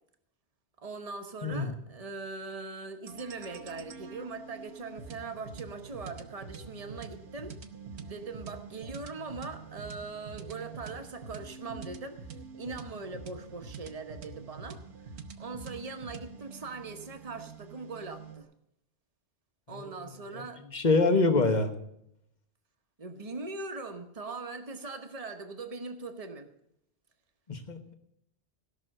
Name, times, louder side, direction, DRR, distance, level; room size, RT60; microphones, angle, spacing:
voice 1, 0.8-7.6 8.0-12.2 12.6-18.5 19.7-20.6 23.0-26.5, right 3 dB, 35° right, 6 dB, 1.1 m, -41 dB
voice 2, 1.4-1.7 19.7-20.0 20.3-20.4 20.7-21.7 27.5-27.9, left 3 dB, 40° left, 6 dB, 1.3 m, -26 dB
sound 1, 3.1-18.4, right 5 dB, 70° right, 1.2 m, -46 dB
16.5 x 6.2 x 6.5 m, 0.77 s
omnidirectional pair, 1.2 m